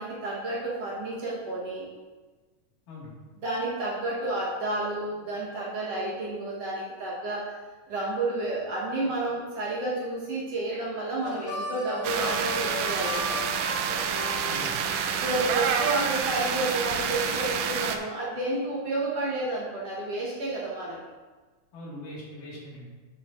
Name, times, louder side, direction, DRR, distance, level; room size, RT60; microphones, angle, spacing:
voice 1, 0.0-1.8 3.4-7.5 7.9-13.4 15.2-21.0, right 2 dB, 55° right, -6 dB, 2.2 m, -30 dB
Harmonica, 11.2-15.5, left 1 dB, 60° left, 1.4 m, -36 dB
sound 1, 12.0-18.0, right 7 dB, 80° right, 1.8 m, -28 dB
voice 2, 14.4-14.9 21.7-23.0, left 1 dB, 80° left, -5 dB, 3.6 m, -42 dB
10.5 x 6.5 x 2.6 m, 1.3 s
omnidirectional pair, 3.7 m